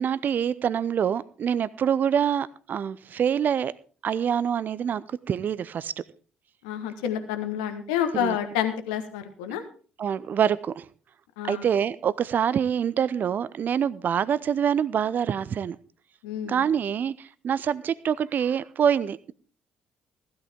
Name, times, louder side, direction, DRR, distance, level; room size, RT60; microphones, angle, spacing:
voice 1, 0.0-3.7 4.0-5.9 8.2-8.4 10.0-10.9 11.4-15.8 16.4-19.3, right 8 dB, 45° right, 18 dB, 0.6 m, -25 dB
voice 2, 6.6-9.6 11.4-11.6 16.2-16.6, left 9 dB, 70° left, 8 dB, 1.4 m, -29 dB
15.5 x 12.0 x 3.6 m, 0.40 s
figure-of-eight pair, 50°, 4 cm